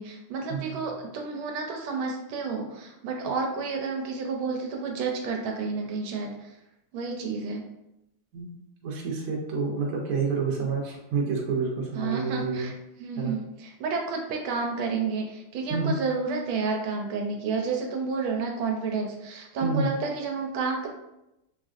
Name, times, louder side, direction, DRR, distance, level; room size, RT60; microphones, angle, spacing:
voice 1, 0.0-6.5 6.9-7.6 10.6-10.7 11.9-12.7 13.0-20.9, right 4 dB, 85° right, 1 dB, 1.4 m, -30 dB
voice 2, 8.8-12.7 13.2-13.3 15.7-16.0 19.6-19.9, right 4 dB, 65° right, -1 dB, 1.0 m, -28 dB
3.5 x 2.4 x 2.5 m, 0.88 s
omnidirectional pair, 2.2 m